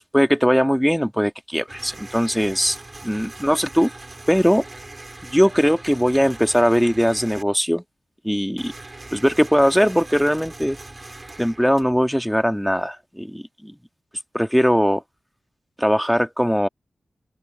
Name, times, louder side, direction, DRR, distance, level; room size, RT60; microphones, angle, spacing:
voice 1, 0.0-2.8 3.0-3.9 4.3-4.6 5.2-7.8 8.2-8.7 9.1-10.8 11.4-13.7 14.3-15.0 15.8-16.7, equal, ahead, 1.7 m, -20 dB
sound 1, 1.7-7.4 8.6-12.2, right 2 dB, 35° right, 5.9 m, -40 dB
open air
cardioid pair, 45°, 0 cm